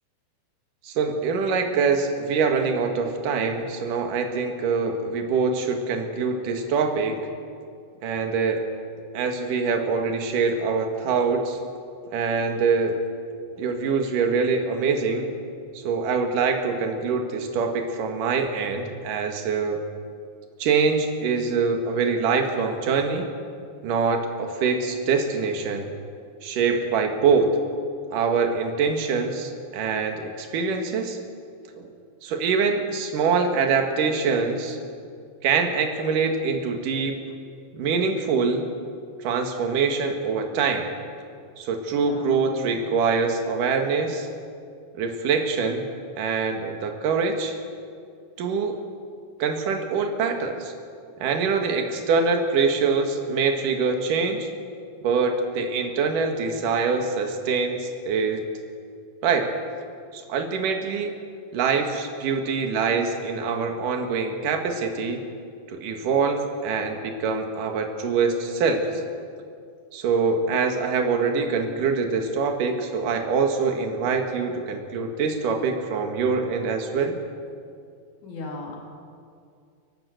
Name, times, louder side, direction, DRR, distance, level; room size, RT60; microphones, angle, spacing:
voice 1, 0.8-7.2 8.0-8.6 9.1-11.6 12.1-13.0 13.6-15.3 15.7-19.8 20.6-23.3 23.8-25.9 26.4-27.5 28.1-31.2 31.8-31.9 32.2-34.8 35.4-37.2 37.7-38.7 39.2-40.9 41.6-44.3 44.9-45.9 46.2-47.5 48.4-48.8 49.4-50.7 51.2-54.5 55.0-58.4 59.2-59.5 60.1-61.1 61.5-65.2 65.7-68.8 69.9-77.2, right 5 dB, 65° right, 4 dB, 3.2 m, -24 dB
voice 2, 41.9-42.4 42.7-43.1 78.2-78.8, left 2 dB, 55° left, -2 dB, 5.0 m, -38 dB
29.5 x 12.5 x 7.9 m, 2.3 s
omnidirectional pair, 4.2 m